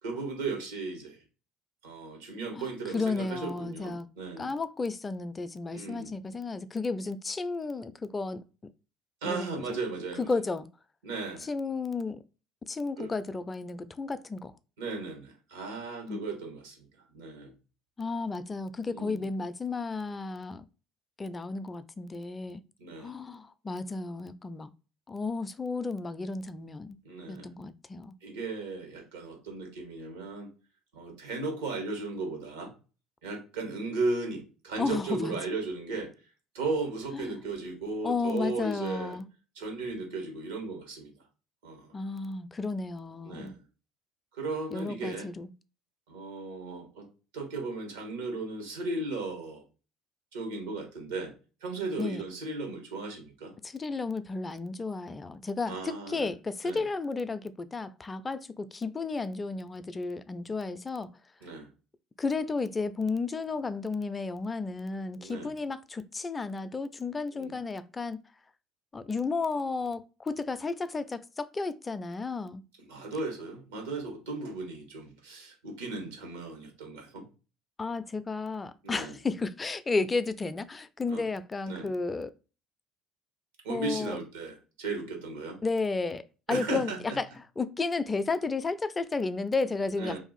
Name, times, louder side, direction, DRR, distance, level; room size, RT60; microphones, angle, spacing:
voice 1, 0.0-1.2 1.8-4.5 5.7-6.1 9.2-10.3 11.0-11.5 13.0-13.1 14.8-16.9 17.1-17.5 18.9-19.2 22.8-23.1 27.0-27.5 28.2-30.5 30.9-32.7 33.2-36.1 36.5-39.2 39.5-41.1 41.6-41.9 43.2-43.6 44.3-45.3 46.1-47.1 47.3-49.6 50.3-51.3 51.6-53.5 55.7-56.3 56.6-56.8 61.4-61.7 65.2-65.5 67.3-67.6 72.9-77.2 78.8-79.1 81.1-81.2 81.6-81.9 83.6-85.6 86.5-87.2 90.0-90.2, right 3 dB, 80° right, 1.2 m, -36 dB
voice 2, 2.9-4.1 4.4-8.4 9.2-9.8 10.2-10.7 11.4-12.2 12.7-14.5 16.1-16.2 18.0-20.7 21.2-22.6 23.0-24.7 25.1-27.0 27.3-28.1 34.8-35.4 37.1-37.3 38.0-39.3 41.9-43.6 44.7-45.5 52.0-52.2 53.6-61.1 62.2-68.2 68.9-72.6 77.8-82.3 83.7-84.2 85.6-87.3 87.6-90.2, left 3 dB, 25° left, 0.4 m, -33 dB
2.6 x 2.4 x 4.1 m
hypercardioid pair, 65°, 0 cm